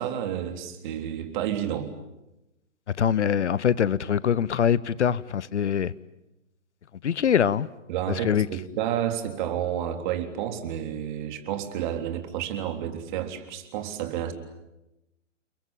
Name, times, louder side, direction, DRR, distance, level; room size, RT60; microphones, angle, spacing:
voice 1, 0.0-1.9 7.9-14.3, right 10 dB, 40° right, 3.6 m, -30 dB
voice 2, 3.0-5.9 7.0-7.7 8.2-8.5, left 8 dB, 65° left, 1.0 m, -23 dB
30.0 x 22.0 x 9.1 m
figure-of-eight pair, 125°, 38 cm